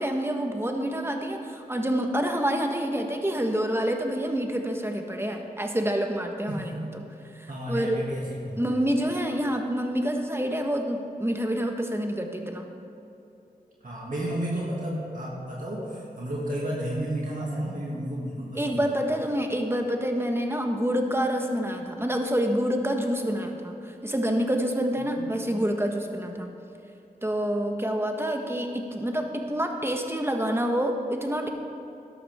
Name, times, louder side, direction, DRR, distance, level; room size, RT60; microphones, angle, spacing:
voice 1, 0.0-6.7 7.4-8.0 8.6-12.6 18.6-26.5 27.2-31.5, equal, 15° right, 3 dB, 1.3 m, -27 dB
voice 2, 7.5-8.8 13.8-18.9 25.2-25.4, right 1 dB, 55° right, -5 dB, 2.3 m, -32 dB
12.5 x 11.5 x 3.6 m, 2.8 s
wide cardioid pair, 55°, 16 cm